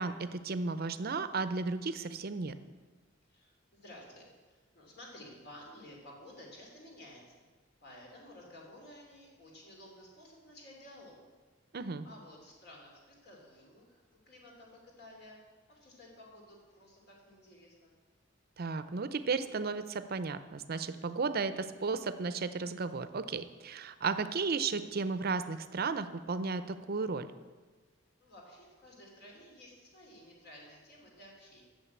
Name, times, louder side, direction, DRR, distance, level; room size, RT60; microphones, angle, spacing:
voice 1, 0.0-2.6 11.7-12.1 18.6-27.3, right 4 dB, 50° right, 12 dB, 0.6 m, -34 dB
voice 2, 3.3-7.5 7.8-11.2 12.0-15.4 15.7-17.9 28.2-31.7, left 1 dB, 55° left, -1 dB, 3.0 m, -53 dB
9.2 x 6.9 x 8.1 m, 1.4 s
head